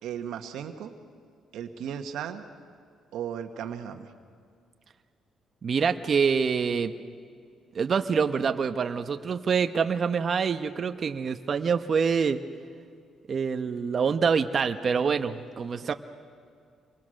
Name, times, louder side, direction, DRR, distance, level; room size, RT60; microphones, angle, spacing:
voice 1, 0.0-0.9 1.5-2.4 3.1-4.1 15.8-15.9, right 8 dB, 85° right, 6 dB, 1.5 m, -36 dB
voice 2, 5.6-6.9 7.7-12.4 13.3-15.9, right 6 dB, 50° right, 8 dB, 1.0 m, -26 dB
27.0 x 23.0 x 6.5 m, 2.3 s
cardioid pair, 90°, 0 cm